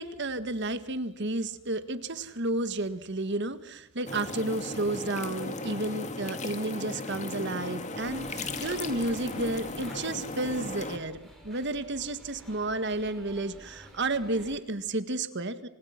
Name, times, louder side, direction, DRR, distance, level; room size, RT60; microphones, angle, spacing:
voice 1, 0.0-11.2 11.4-15.7, right 2 dB, 55° right, 11 dB, 1.8 m, -32 dB
sound 1, 4.1-11.0, left 2 dB, 35° left, 2.2 m, -36 dB
sound 2, 8.0-14.6, equal, ahead, 7.0 m, -51 dB
29.0 x 25.5 x 6.0 m, 0.83 s
head